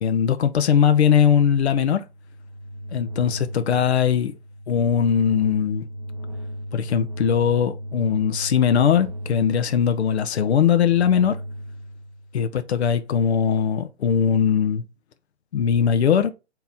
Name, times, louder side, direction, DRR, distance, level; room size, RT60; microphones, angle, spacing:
voice 1, 0.0-2.1 2.9-4.3 4.7-5.9 6.7-11.4 12.3-14.8 15.5-16.3, left 8 dB, 65° left, 0.6 m, -20 dB
sound 1, 1.9-12.5, equal, 30° right, 0.5 m, -36 dB
3.7 x 2.8 x 4.2 m
hypercardioid pair, 170°, 35 cm